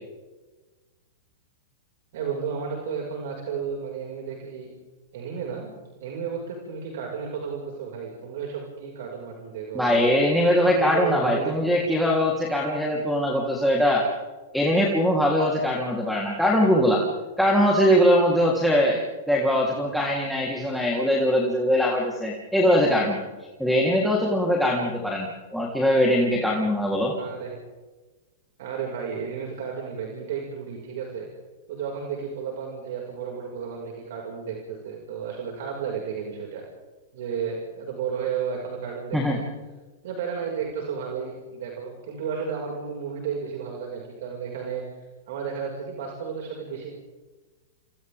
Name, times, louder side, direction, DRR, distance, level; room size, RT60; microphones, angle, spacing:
voice 1, 2.1-4.7 5.1-10.1 10.7-11.7 27.1-27.5 28.6-31.3 31.7-36.6 37.1-39.4 40.0-46.9, right 6 dB, 65° right, 0 dB, 5.7 m, -33 dB
voice 2, 9.7-14.1 14.5-17.0 17.4-23.2 23.6-27.1 39.1-39.4, equal, ahead, -2 dB, 3.6 m, -22 dB
29.5 x 27.0 x 3.7 m, 1.2 s
hypercardioid pair, 125°, 0 cm